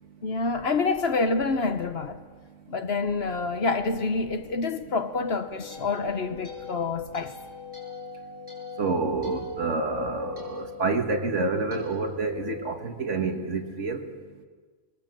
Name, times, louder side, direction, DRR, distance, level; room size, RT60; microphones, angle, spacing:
voice 1, 0.2-2.2 2.7-7.3, left 3 dB, 55° left, 1.2 m, -27 dB
sound 1, 5.2-13.5, left 6 dB, 15° right, 7.1 m, -43 dB
voice 2, 8.8-14.0, right 3 dB, 60° right, 2.0 m, -28 dB
24.5 x 20.5 x 7.5 m
omnidirectional pair, 1.4 m